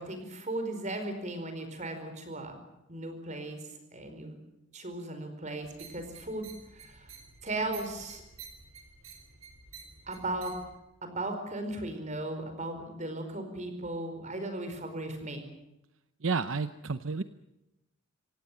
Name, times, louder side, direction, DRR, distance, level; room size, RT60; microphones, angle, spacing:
voice 1, 0.0-2.6 2.9-3.6 3.9-4.4 4.7-6.5 6.7-7.1 7.4-8.2 10.1-10.5 11.0-15.4, right 2 dB, 35° right, 7 dB, 4.7 m, -36 dB
sound 1, 5.6-10.8, right 6 dB, 85° right, 4.2 m, -51 dB
voice 2, 16.2-17.2, right 4 dB, 65° right, 11 dB, 0.7 m, -31 dB
26.0 x 17.5 x 9.0 m, 0.93 s
head